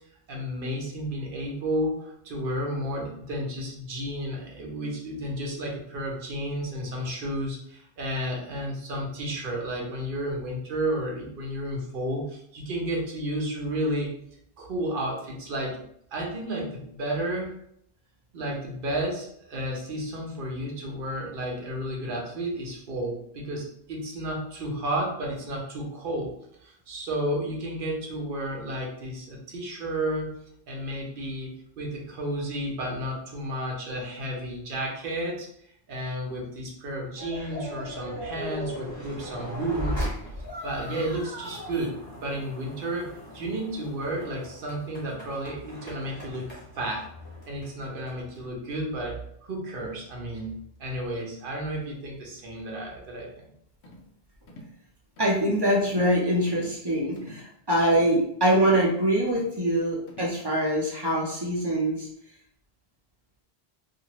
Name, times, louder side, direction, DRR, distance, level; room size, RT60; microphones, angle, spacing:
voice 1, 0.3-14.1 14.6-15.8 16.1-17.5 18.3-26.3 26.6-30.3 30.7-35.5 35.9-40.1 40.6-47.1 47.5-53.5, right 1 dB, 60° right, -1 dB, 0.9 m, -32 dB
sound 1, 37.2-48.5, equal, 20° left, 1.1 m, -38 dB
sound 2, 53.8-54.1 54.5-54.8 55.2-55.4 55.8-56.2 56.5-56.8 57.2-57.5 57.8-58.2 58.6-58.9 59.3-59.6 60.1-60.4, left 1 dB, 85° left, 0.9 m, -47 dB
voice 2, 55.2-62.1, right 1 dB, 30° right, -4 dB, 0.6 m, -24 dB
2.6 x 2.4 x 2.9 m, 0.72 s
omnidirectional pair, 1.1 m